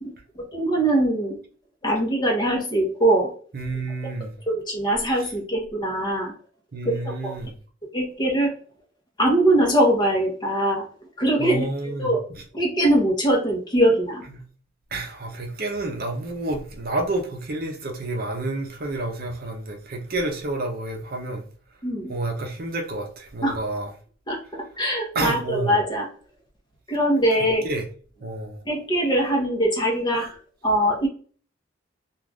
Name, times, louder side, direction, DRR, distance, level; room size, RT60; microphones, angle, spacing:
voice 1, 0.0-1.3 1.8-3.3 4.5-6.3 6.8-7.3 7.9-8.5 9.2-10.8 11.2-12.2 12.5-14.2 21.8-22.1 23.4-23.6 24.3-26.1 26.9-27.6 28.7-30.3 30.6-31.1, right 1 dB, 25° left, 0.8 m, -22 dB
voice 2, 3.5-4.3 6.7-7.6 11.4-12.1 14.3-14.4 14.9-21.4 22.1-23.9 25.1-25.8 27.6-27.8 28.2-28.6, right 2 dB, 50° right, 0.6 m, -29 dB
2.4 x 2.4 x 3.3 m
head